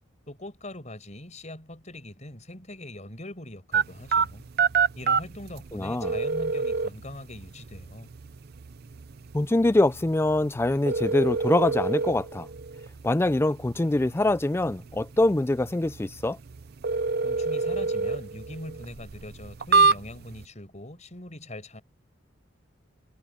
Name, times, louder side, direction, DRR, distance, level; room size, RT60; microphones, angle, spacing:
voice 1, 0.3-4.4 5.0-8.1 17.2-21.8, left 1 dB, 35° left, 5.3 m, -42 dB
sound 1, 3.7-20.4, right 4 dB, 50° right, 0.5 m, -28 dB
voice 2, 5.7-6.1 9.3-12.5 13.0-16.4, left 2 dB, 10° left, 0.3 m, -24 dB
head